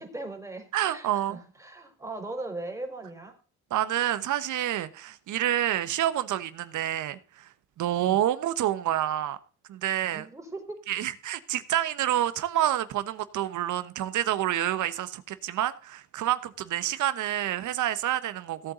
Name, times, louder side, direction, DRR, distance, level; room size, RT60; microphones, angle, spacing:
voice 1, 0.0-3.4 10.1-10.8, right 2 dB, 10° right, 4 dB, 4.1 m, -39 dB
voice 2, 0.7-1.4 3.7-9.4 9.7-10.3 10.9-18.7, right 12 dB, 80° right, 14 dB, 1.2 m, -28 dB
17.0 x 8.2 x 3.9 m, 0.39 s
cardioid pair, 90°, 30 cm